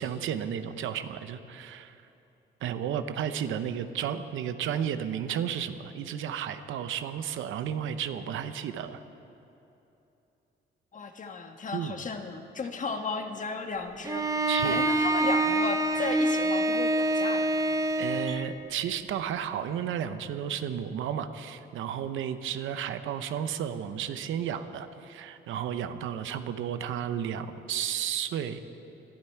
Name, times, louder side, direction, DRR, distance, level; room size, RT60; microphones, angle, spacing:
voice 1, 0.0-2.0 2.6-9.0 11.7-12.0 14.5-14.8 18.0-28.6, right 9 dB, 80° right, 10 dB, 0.8 m, -33 dB
voice 2, 10.9-14.2 14.6-17.5, left 4 dB, 40° left, 5 dB, 1.4 m, -35 dB
Bowed string instrument, 14.1-18.5, right 2 dB, 15° right, 0.8 m, -26 dB
21.5 x 12.0 x 4.6 m, 2.9 s
cardioid pair, 90°, 20 cm